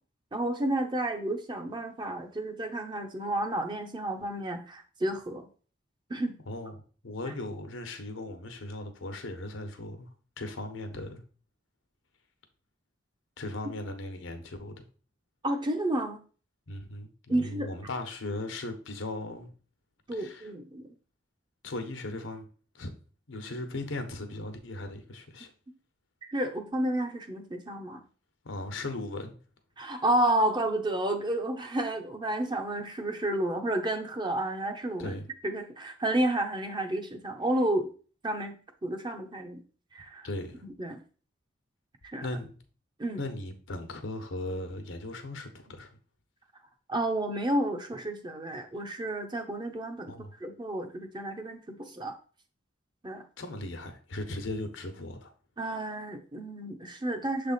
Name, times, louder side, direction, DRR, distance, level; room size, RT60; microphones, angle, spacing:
voice 1, 0.3-5.5 6.1-6.3 15.4-16.2 17.3-17.7 20.1-20.9 26.2-28.0 29.8-35.2 35.4-37.9 38.2-38.5 38.8-39.6 39.9-40.3 40.8-41.0 42.0-42.3 43.0-43.2 46.9-50.1 50.4-52.1 53.0-53.2 55.6-57.5, right 1 dB, 25° right, 0.8 m, -31 dB
voice 2, 6.4-11.2 13.4-14.7 16.7-19.5 20.1-20.5 21.6-22.5 22.7-22.9 23.3-25.5 28.4-29.4 35.0-35.3 40.2-40.6 42.2-42.6 43.2-46.0 50.1-50.3 53.4-55.3, left 2 dB, 90° left, 1.0 m, -38 dB
6.7 x 3.4 x 4.1 m
head